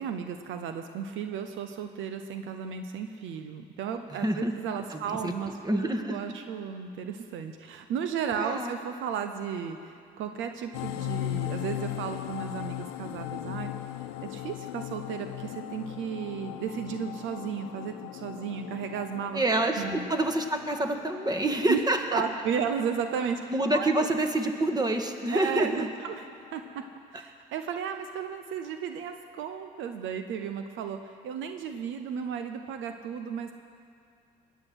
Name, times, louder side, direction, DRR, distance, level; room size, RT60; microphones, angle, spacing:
voice 1, 0.0-13.7 14.2-19.4 19.8-20.1 21.7-21.8 22.1-24.1 25.3-26.2 26.5-26.8 27.1-33.5, right 7 dB, 70° right, 7 dB, 0.8 m, -34 dB
voice 2, 4.1-4.5 4.9-5.3 5.6-6.2 8.4-8.7 19.3-22.2 23.5-25.9, right 1 dB, 20° right, 5 dB, 1.7 m, -27 dB
sound 1, 10.7-27.0, left 16 dB, 85° left, 0.5 m, -39 dB
20.0 x 8.2 x 6.2 m, 2.4 s
hypercardioid pair, 55°, 21 cm